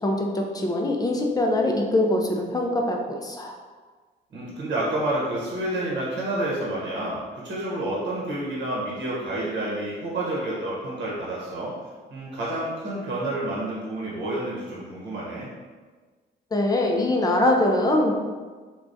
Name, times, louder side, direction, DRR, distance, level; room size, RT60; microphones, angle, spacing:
voice 1, 0.0-3.5 16.5-18.1, left 1 dB, 20° left, 1 dB, 0.4 m, -23 dB
voice 2, 4.3-11.7 12.1-15.5, right 1 dB, 65° right, -5 dB, 0.9 m, -29 dB
3.3 x 2.2 x 2.6 m, 1.4 s
cardioid pair, 90°, 20 cm